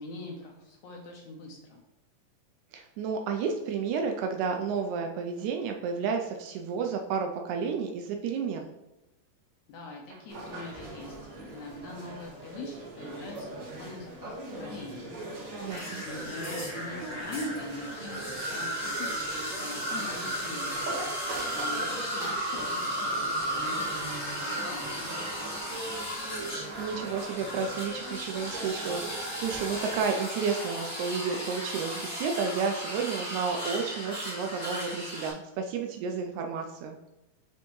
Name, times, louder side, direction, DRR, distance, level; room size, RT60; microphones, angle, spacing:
voice 1, 0.0-1.8 9.7-11.2 11.5-15.5 15.7-20.8 21.5-25.2, left 2 dB, 70° left, 0 dB, 1.9 m, -43 dB
voice 2, 2.7-8.7 15.6-16.0 26.8-37.0, right 5 dB, 90° right, 3 dB, 1.7 m, -31 dB
sound 1, 10.3-30.0, right 2 dB, 60° right, 2.6 m, -41 dB
sound 2, 15.7-35.3, equal, 10° left, 0.9 m, -35 dB
9.5 x 3.4 x 3.1 m, 0.95 s
omnidirectional pair, 4.0 m